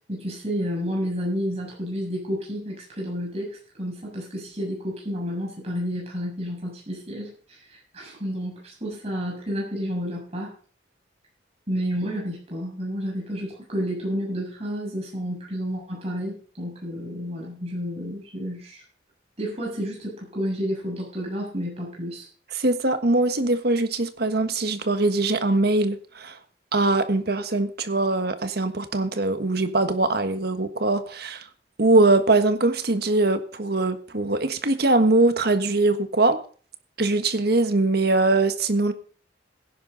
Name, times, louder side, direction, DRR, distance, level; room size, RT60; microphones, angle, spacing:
voice 1, 0.1-10.5 11.7-18.8 19.4-22.3, equal, 35° right, -3 dB, 7.0 m, -30 dB
voice 2, 22.5-26.3 26.7-31.4 31.8-36.4 37.0-38.9, right 2 dB, 55° right, 9 dB, 1.4 m, -22 dB
17.0 x 10.5 x 4.0 m, 0.42 s
head